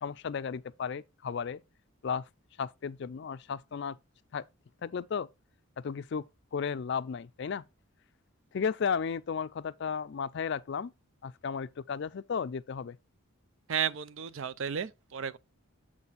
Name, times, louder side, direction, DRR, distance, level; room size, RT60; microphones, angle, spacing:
voice 1, 0.0-1.6 2.0-2.2 2.6-4.0 4.3-4.4 4.8-5.3 5.8-6.2 6.5-7.6 8.5-10.9 11.2-13.0, left 6 dB, 50° left, 0.4 m, -34 dB
voice 2, 13.7-15.4, right 8 dB, 60° right, 0.4 m, -33 dB
7.3 x 4.2 x 4.0 m
head